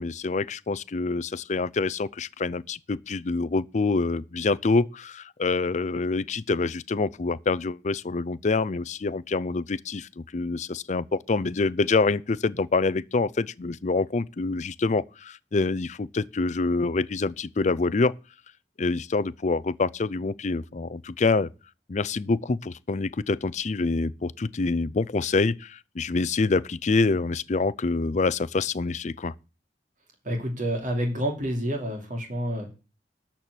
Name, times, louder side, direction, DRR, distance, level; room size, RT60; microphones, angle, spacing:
voice 1, 0.0-18.1 18.8-21.5 21.9-29.3, left 3 dB, 40° left, 0.5 m, -26 dB
voice 2, 30.2-32.7, equal, 45° right, 2.8 m, -28 dB
12.5 x 4.4 x 8.3 m
head